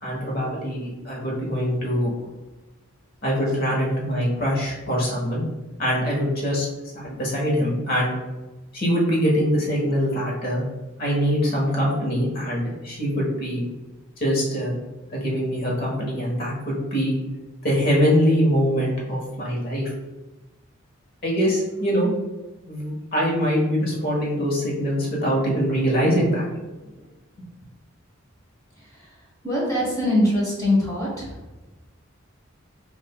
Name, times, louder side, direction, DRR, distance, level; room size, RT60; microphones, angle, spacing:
voice 1, 0.0-2.1 3.2-5.4 5.8-6.7 6.9-8.1 8.7-10.7 11.0-13.6 14.2-14.7 15.1-17.2 17.6-19.9 21.2-22.1 22.7-26.5 27.4-27.5, equal, 45° left, -3 dB, 1.1 m, -23 dB
voice 2, 29.4-31.3, left 1 dB, 15° left, -4 dB, 0.9 m, -22 dB
5.4 x 2.6 x 2.2 m, 1.1 s
head